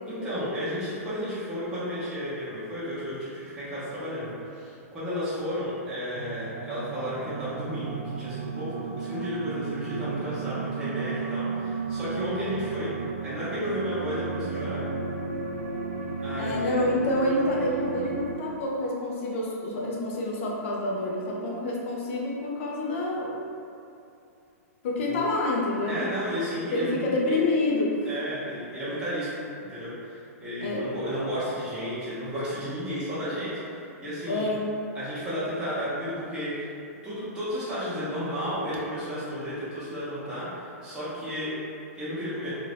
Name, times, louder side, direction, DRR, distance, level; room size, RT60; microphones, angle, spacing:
voice 1, 0.1-12.9 13.2-14.8 16.2-16.8 25.0-25.3 25.9-27.4 28.0-29.3 29.7-34.5 34.9-36.7 37.0-41.5 42.0-42.5, equal, 10° right, -12 dB, 0.6 m, -33 dB
sound 1, 6.1-18.4, right 4 dB, 70° right, 0.4 m, -33 dB
voice 2, 16.3-23.4 24.8-26.1 26.7-28.0 30.6-30.9 34.3-34.7, left 2 dB, 55° left, -3 dB, 0.6 m, -28 dB
2.5 x 2.4 x 3.3 m, 2.6 s
hypercardioid pair, 155°, 8 cm